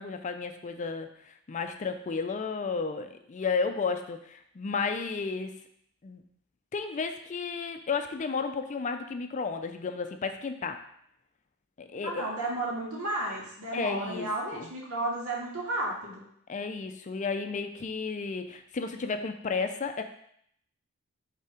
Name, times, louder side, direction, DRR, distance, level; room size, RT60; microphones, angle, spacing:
voice 1, 0.0-5.6 6.0-6.2 6.7-10.8 11.8-12.3 13.7-14.3 14.5-14.7 16.5-20.0, left 4 dB, 35° left, 7 dB, 0.4 m, -33 dB
voice 2, 11.9-16.2, right 2 dB, 85° right, -3 dB, 1.9 m, -33 dB
5.6 x 3.4 x 4.9 m, 0.69 s
head